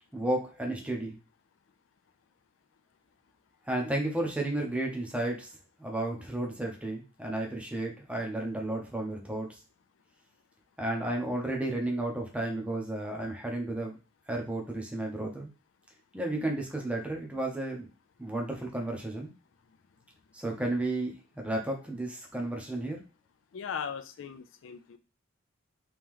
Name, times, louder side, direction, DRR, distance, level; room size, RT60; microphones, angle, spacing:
voice 1, 0.1-1.2 3.6-5.5 5.8-9.6 10.8-14.0 14.3-15.5 16.1-17.9 18.2-19.3 20.3-23.0, right 1 dB, 5° right, 1 dB, 0.7 m, -33 dB
voice 2, 23.5-25.0, left 7 dB, 70° left, 8 dB, 0.4 m, -38 dB
3.1 x 2.9 x 3.6 m, 0.32 s
head